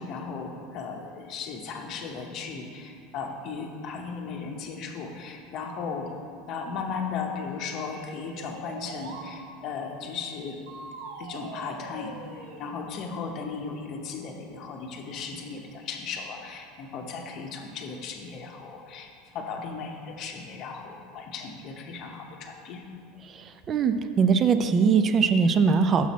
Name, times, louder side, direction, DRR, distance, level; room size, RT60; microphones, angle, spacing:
voice 1, 0.0-6.1 6.5-10.6 11.2-22.8, left 5 dB, 45° left, 3 dB, 0.7 m, -36 dB
sound 1, 7.5-9.3 10.7-12.7, right 3 dB, 85° right, 0.8 m, -43 dB
voice 2, 23.3-26.1, right 5 dB, 30° right, 10 dB, 0.3 m, -22 dB
6.1 x 5.8 x 4.1 m, 2.4 s
supercardioid pair, 135°, 0 cm